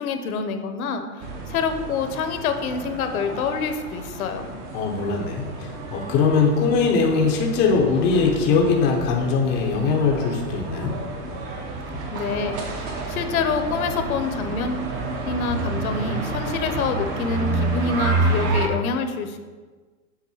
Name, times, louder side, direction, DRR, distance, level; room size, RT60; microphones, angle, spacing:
voice 1, 0.0-4.5 12.1-14.9 15.3-19.4, left 5 dB, 60° left, 8 dB, 0.9 m, -27 dB
sound 1, 1.2-18.7, right 3 dB, 25° right, 0.7 m, -29 dB
voice 2, 4.7-10.9, left 4 dB, 20° left, 0 dB, 0.6 m, -21 dB
7.3 x 3.7 x 5.5 m, 1.4 s
hypercardioid pair, 150°, 47 cm